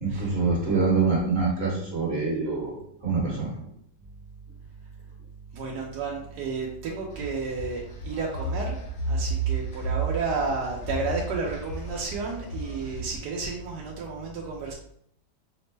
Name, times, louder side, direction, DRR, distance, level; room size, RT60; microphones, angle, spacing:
voice 1, 0.0-2.7 3.0-3.6, right 4 dB, 40° right, -4 dB, 1.2 m, -25 dB
voice 2, 5.5-8.7 9.1-14.7, right 4 dB, 70° right, -2 dB, 1.1 m, -32 dB
sound 1, 7.1-13.1, right 3 dB, 70° left, 0.6 m, -32 dB
5.0 x 2.0 x 3.2 m, 0.70 s
omnidirectional pair, 2.1 m